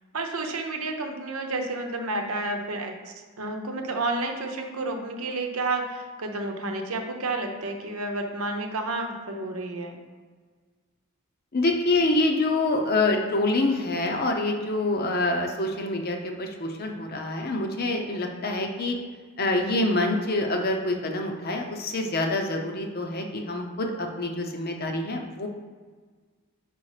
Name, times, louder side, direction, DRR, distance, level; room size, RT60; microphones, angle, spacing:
voice 1, 0.1-10.0, right 2 dB, 75° right, 4 dB, 0.8 m, -31 dB
voice 2, 11.5-19.0 19.4-25.5, left 2 dB, 45° left, 3 dB, 0.7 m, -26 dB
5.4 x 4.2 x 4.9 m, 1.5 s
head